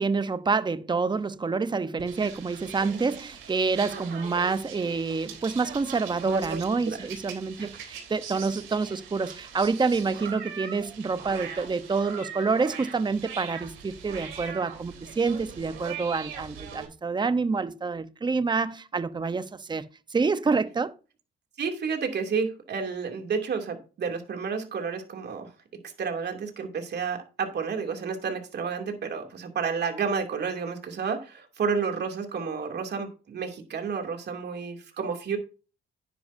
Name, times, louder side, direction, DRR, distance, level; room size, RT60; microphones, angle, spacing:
voice 1, 0.0-20.9, right 4 dB, 20° right, 0.9 m, -27 dB
sound 1, 2.0-16.8, right 7 dB, 85° right, 3.7 m, -42 dB
voice 2, 6.2-7.1 7.6-7.7 21.6-25.5 26.0-35.4, right 5 dB, 55° right, 2.7 m, -31 dB
10.5 x 10.0 x 2.7 m
cardioid pair, 90°, 20 cm